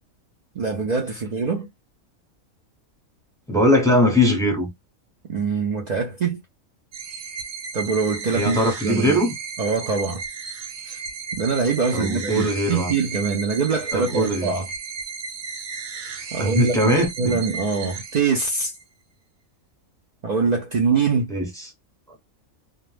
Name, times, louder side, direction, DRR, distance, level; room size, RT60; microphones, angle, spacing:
voice 1, 0.5-1.7 5.3-6.4 7.7-8.6 8.8-9.2 9.6-10.2 10.9-11.0 11.3-14.7 16.3-18.7 20.2-21.3, right 5 dB, 70° right, 0.4 m, -23 dB
voice 2, 3.5-4.7 8.3-9.3 11.9-13.0 13.9-14.6 16.4-17.4 21.3-21.7, equal, 5° left, 0.7 m, -21 dB
sound 1, 6.9-18.8, right 5 dB, 85° right, 1.1 m, -34 dB
2.4 x 2.2 x 3.2 m
omnidirectional pair, 1.4 m